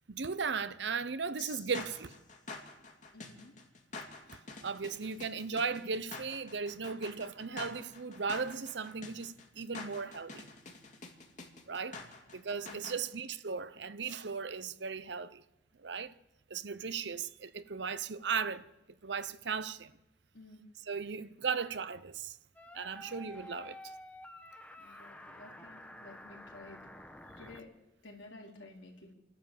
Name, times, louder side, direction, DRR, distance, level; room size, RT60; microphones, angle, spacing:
voice 1, 0.1-2.2 4.6-10.5 11.7-12.0 12.3-15.4 15.8-16.1 16.5-18.7 19.0-19.9 20.9-22.4 22.7-23.8, right 5 dB, 70° right, 0.8 m, -37 dB
sound 1, 1.4-13.0, left 3 dB, 40° left, 2.4 m, -47 dB
voice 2, 3.1-3.5 12.4-12.9 20.3-20.6 24.8-26.9 27.4-27.7 28.0-29.2, left 2 dB, 80° left, 3.9 m, -53 dB
sound 2, 22.6-27.6, left 1 dB, 10° left, 1.1 m, -50 dB
29.0 x 12.0 x 7.6 m
head